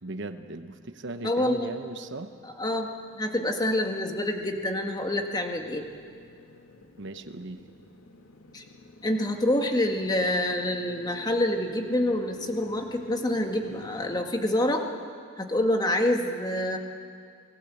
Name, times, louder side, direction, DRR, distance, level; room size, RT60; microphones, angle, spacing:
voice 1, 0.0-2.3 7.0-7.7, right 2 dB, 55° right, 7 dB, 1.0 m, -38 dB
voice 2, 1.2-1.7 2.6-5.8 8.5-8.6 9.0-14.8 15.4-16.8, left 1 dB, 20° left, 3 dB, 1.7 m, -27 dB
Motorcycle, 1.6-14.3, left 2 dB, 85° left, 2.5 m, -50 dB
28.5 x 18.5 x 8.3 m, 2.2 s
head